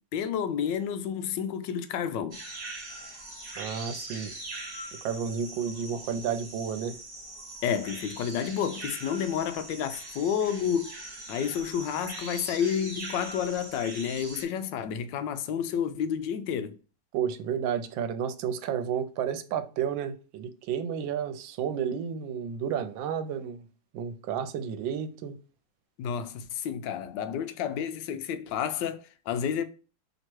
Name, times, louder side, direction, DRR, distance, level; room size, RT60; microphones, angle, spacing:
voice 1, 0.1-2.4 7.6-16.8 26.0-29.6, left 8 dB, 75° left, 1.2 m, -30 dB
sound 1, 2.3-14.4, right 2 dB, 35° right, 1.2 m, -42 dB
voice 2, 3.6-4.3 5.0-7.0 17.1-23.6 23.9-25.4, right 8 dB, 80° right, 1.3 m, -31 dB
3.2 x 3.0 x 4.3 m
omnidirectional pair, 2.1 m